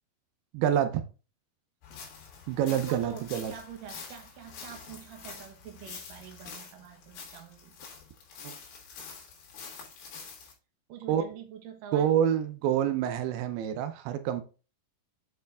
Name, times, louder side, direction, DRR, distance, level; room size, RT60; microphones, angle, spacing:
voice 1, 0.5-1.0 2.5-3.5 8.4-8.6 11.1-11.2 11.9-14.4, right 10 dB, 90° right, 2.7 m, -27 dB
sound 1, 1.8-10.5, left 5 dB, 75° left, 3.6 m, -46 dB
voice 2, 2.6-7.7 10.9-12.1, right 8 dB, 65° right, 2.6 m, -45 dB
7.6 x 4.6 x 3.4 m
omnidirectional pair, 4.4 m